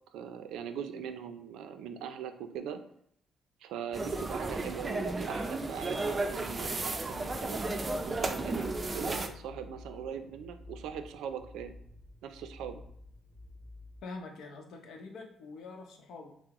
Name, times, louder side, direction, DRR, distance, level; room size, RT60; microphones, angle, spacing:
voice 1, 0.1-2.8 3.6-6.0 6.3-7.6 8.0-11.7 12.2-12.8, right 8 dB, 90° right, 9 dB, 0.4 m, -41 dB
sound 1, 3.9-9.3, right 2 dB, 25° right, 0.4 m, -33 dB
sound 2, 6.6-14.0, left 2 dB, 60° left, 1.0 m, -51 dB
voice 2, 14.0-16.4, left 3 dB, 75° left, 3 dB, 0.7 m, -45 dB
5.8 x 2.0 x 3.0 m, 0.68 s
cardioid pair, 90°, 0 cm